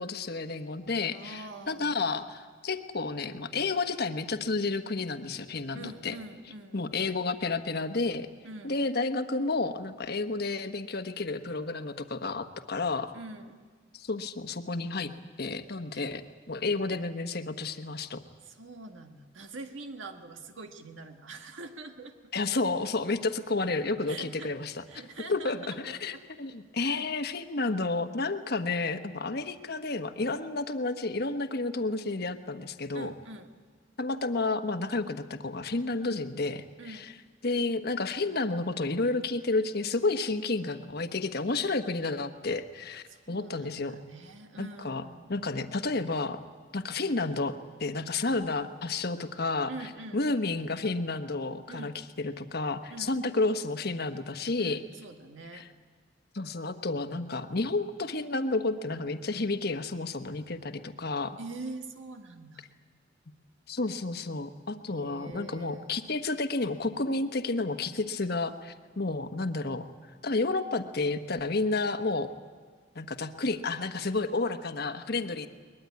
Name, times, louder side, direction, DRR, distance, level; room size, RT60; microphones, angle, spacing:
voice 1, 0.0-6.1 6.7-8.3 8.6-13.1 13.9-15.1 15.4-18.2 22.3-24.8 25.3-33.1 34.0-37.1 37.4-44.0 44.6-45.0 45.3-46.4 46.7-49.7 50.1-51.9 52.2-54.8 55.5-55.7 56.3-61.4 63.7-69.8 70.2-72.3 72.9-75.5, left 3 dB, 55° left, 8 dB, 1.2 m, -31 dB
voice 2, 1.1-2.0 5.7-6.9 8.4-8.8 13.1-13.6 15.9-16.1 18.4-22.3 24.1-24.5 24.9-26.2 26.8-27.1 32.9-33.5 36.8-37.1 43.1-45.3 49.7-50.2 51.7-52.0 52.9-53.1 54.6-55.7 61.4-62.7 64.8-66.0, right 2 dB, 80° right, 5 dB, 1.8 m, -44 dB
22.0 x 21.5 x 9.6 m, 1.5 s
head